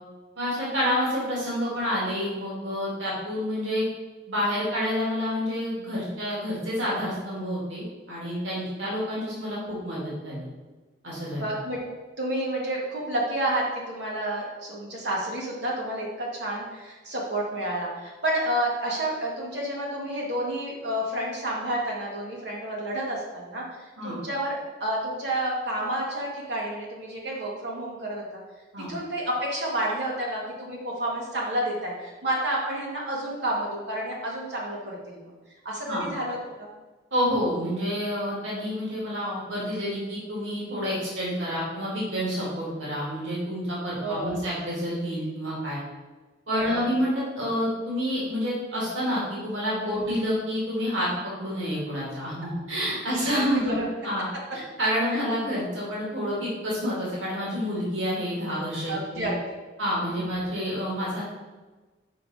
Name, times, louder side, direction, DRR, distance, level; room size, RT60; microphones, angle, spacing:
voice 1, 0.4-3.8 4.3-10.5 11.0-11.4 24.0-24.2 28.7-28.9 35.9-36.1 37.1-45.8 46.5-53.8 54.0-54.2 54.5-59.3 59.8-61.2, equal, 85° right, -6 dB, 2.0 m, -28 dB
voice 2, 11.4-11.8 12.2-28.2 28.9-35.3 35.6-36.7 43.9-44.3 46.5-46.8 49.8-50.0 53.1-53.9 55.1-55.2 58.9-59.6 60.0-60.3, right 1 dB, 65° right, -3 dB, 1.7 m, -30 dB
5.8 x 4.9 x 4.1 m, 1.3 s
head